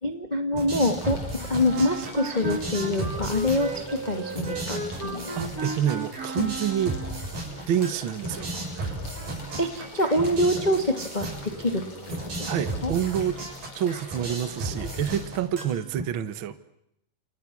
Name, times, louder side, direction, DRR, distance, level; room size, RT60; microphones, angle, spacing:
voice 1, 0.0-5.3 6.4-6.5 9.6-11.8 12.4-12.6 12.8-12.9, left 1 dB, 20° left, 5 dB, 1.3 m, -25 dB
sound 1, 0.5-16.0, right 2 dB, 85° right, 8.5 m, -35 dB
sound 2, 0.7-15.2, left 3 dB, 45° left, 5.6 m, -45 dB
Wind instrument woodwind instrument, 1.6-7.3, right 3 dB, 40° right, 1.2 m, -35 dB
voice 2, 5.4-7.0 7.7-8.9 12.4-13.3 13.7-16.6, right 10 dB, 60° right, 12 dB, 1.4 m, -28 dB
29.5 x 28.5 x 6.2 m, 0.79 s
omnidirectional pair, 4.0 m